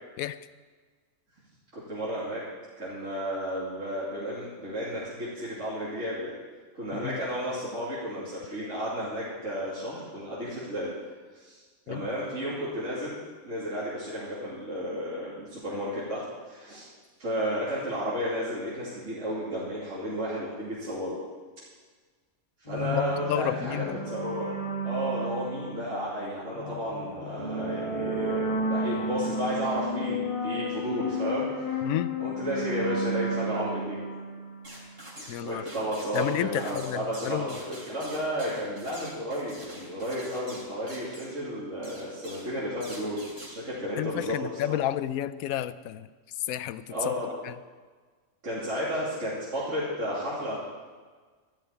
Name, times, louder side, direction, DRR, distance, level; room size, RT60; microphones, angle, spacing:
voice 1, 1.7-2.4 2.8-6.3 6.7-10.9 11.3-11.6 11.9-13.2 13.4-16.9 17.2-21.2 22.6-24.5 24.8-31.8 32.2-34.0 35.4-44.4 44.7-44.8 46.9-47.3 48.4-50.6, equal, 55° right, -8 dB, 3.0 m, -32 dB
sound 1, 22.7-35.2, equal, 25° left, 1.7 m, -32 dB
voice 2, 23.3-24.0 31.8-32.2 35.3-35.6 36.1-37.6 44.0-46.1 46.5-47.1 47.4-47.5, left 12 dB, 75° left, 14 dB, 1.0 m, -31 dB
sound 2, 34.6-35.4 35.7-41.4 41.8-42.5 42.8-43.5, equal, 35° right, 3.6 m, -46 dB
14.0 x 6.4 x 8.7 m, 1.4 s
omnidirectional pair, 1.5 m